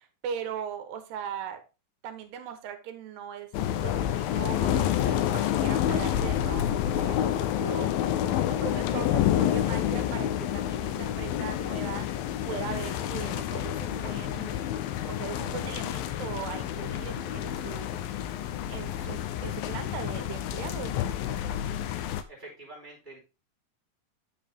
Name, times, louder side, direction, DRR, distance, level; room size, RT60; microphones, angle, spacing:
voice 1, 0.0-1.6 2.0-3.5 3.8-7.9 8.5-12.1 12.5-14.7 15.1-18.1 18.7-21.0, right 8 dB, 80° right, 8 dB, 3.2 m, -39 dB
sound 1, 3.5-22.2, left 11 dB, 80° left, 2.1 m, -29 dB
voice 2, 22.3-23.2, right 2 dB, 10° right, -4 dB, 4.5 m, -46 dB
8.8 x 7.1 x 3.6 m, 0.28 s
omnidirectional pair, 4.8 m